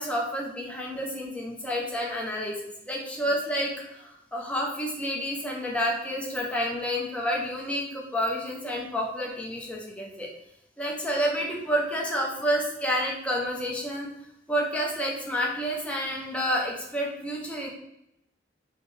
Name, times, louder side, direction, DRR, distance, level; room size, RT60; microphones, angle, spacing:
voice 1, 0.0-10.3 10.8-14.1 14.5-17.7, equal, 5° left, -2 dB, 0.6 m, -29 dB
4.0 x 2.0 x 3.2 m, 0.79 s
head